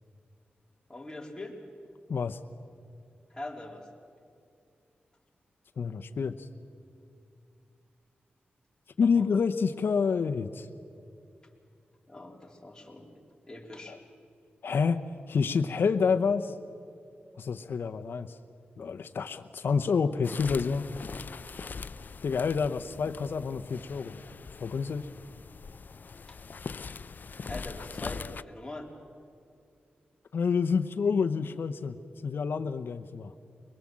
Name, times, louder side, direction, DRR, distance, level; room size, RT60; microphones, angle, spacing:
voice 1, 0.9-1.6 3.3-3.9 9.0-9.2 12.1-13.2 13.5-14.0 26.3-26.4 27.4-28.9, left 2 dB, 20° left, 0 dB, 3.6 m, -42 dB
voice 2, 5.8-6.5 9.0-10.7 13.9-14.0 14.6-16.5 17.4-18.4 18.8-20.9 22.2-24.2 24.6-25.1 30.3-33.3, left 5 dB, 70° left, 6 dB, 0.8 m, -28 dB
sound 1, 20.2-28.4, left 5 dB, 55° left, 0.5 m, -42 dB
23.5 x 21.5 x 7.5 m, 2.5 s
cardioid pair, 75°, 4 cm